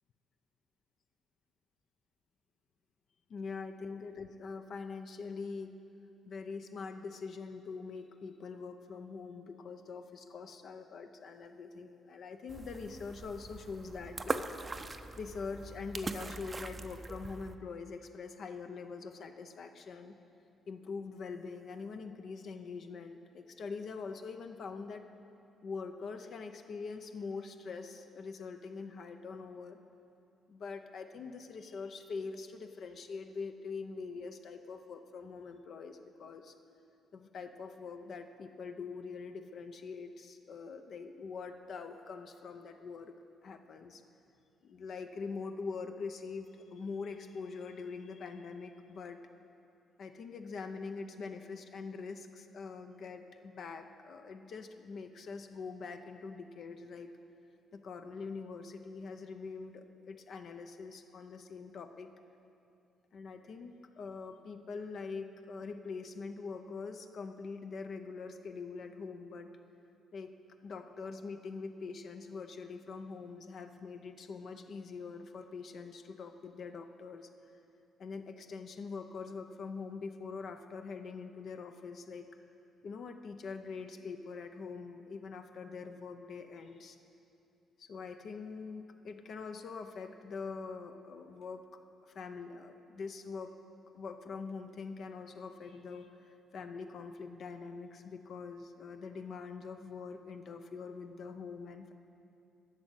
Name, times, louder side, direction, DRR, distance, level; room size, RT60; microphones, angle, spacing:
voice 1, 3.3-5.7 6.3-14.5 15.2-20.2 20.7-25.0 25.6-29.8 30.5-36.5 37.1-43.1 43.4-44.0 44.6-49.2 50.0-57.1 57.7-62.1 63.1-69.5 70.1-70.4 70.6-77.3 78.0-82.3 82.8-87.0 87.8-91.7 92.1-93.6 93.9-101.9, left 4 dB, 60° left, 7 dB, 0.6 m, -44 dB
sound 1, 12.5-17.6, right 3 dB, 25° right, 0.5 m, -41 dB
11.5 x 6.2 x 8.0 m, 2.7 s
cardioid pair, 90°, 0 cm